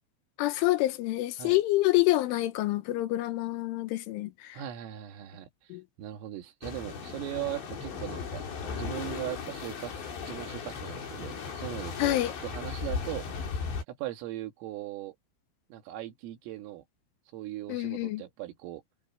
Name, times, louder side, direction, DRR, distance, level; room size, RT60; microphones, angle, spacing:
voice 1, 0.4-4.6 5.7-5.8 12.0-12.3 17.7-18.2, left 17 dB, 75° left, 3.5 m, -27 dB
voice 2, 4.5-8.4 8.7-13.3 13.9-15.2 15.7-16.8 17.3-18.8, right 13 dB, 85° right, 4.6 m, -39 dB
sound 1, 6.6-13.8, left 5 dB, 60° left, 6.6 m, -37 dB
omnidirectional pair, 5.8 m